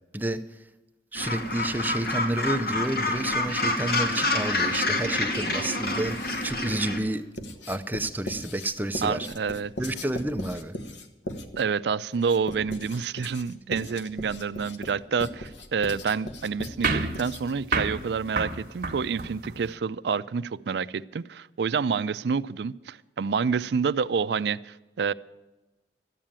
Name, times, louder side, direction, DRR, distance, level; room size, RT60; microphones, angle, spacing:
voice 1, 0.1-0.6 1.1-7.3 7.7-9.3 9.8-10.8, right 1 dB, 10° right, 0.6 m, -30 dB
Gull seagull, 1.1-7.0, left 2 dB, 60° left, 2.1 m, -28 dB
Writing, 6.0-6.7 7.4-17.7, left 1 dB, 90° left, 1.2 m, -39 dB
voice 2, 9.0-9.7 11.6-25.1, right 5 dB, 70° right, 0.4 m, -28 dB
sound 1, 16.8-19.7, right 3 dB, 50° right, 1.3 m, -30 dB
13.0 x 9.0 x 8.7 m
head